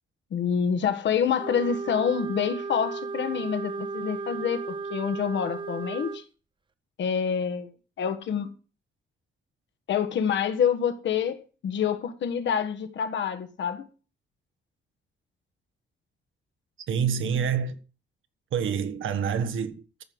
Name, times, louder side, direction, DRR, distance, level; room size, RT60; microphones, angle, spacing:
voice 1, 0.3-6.2 7.0-7.7 8.0-8.5 9.9-13.8, left 7 dB, 65° left, 1.6 m, -27 dB
Wind instrument woodwind instrument, 1.4-6.2, right 4 dB, 25° right, 0.6 m, -35 dB
voice 2, 16.9-17.8 18.5-20.0, right 7 dB, 75° right, 1.6 m, -27 dB
14.0 x 5.5 x 7.9 m
wide cardioid pair, 165°, 20 cm